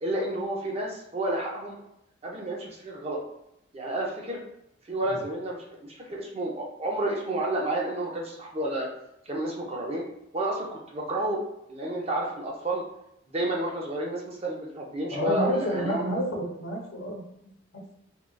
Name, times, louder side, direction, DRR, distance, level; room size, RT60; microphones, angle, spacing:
voice 1, 0.0-1.8 2.2-3.2 3.7-4.4 4.9-8.9 9.3-10.0 10.3-11.4 11.7-12.8 13.3-16.0, right 1 dB, 30° right, -1 dB, 0.4 m, -30 dB
voice 2, 15.1-17.8, equal, 65° left, -1 dB, 0.9 m, -30 dB
3.5 x 2.3 x 2.2 m, 0.81 s
head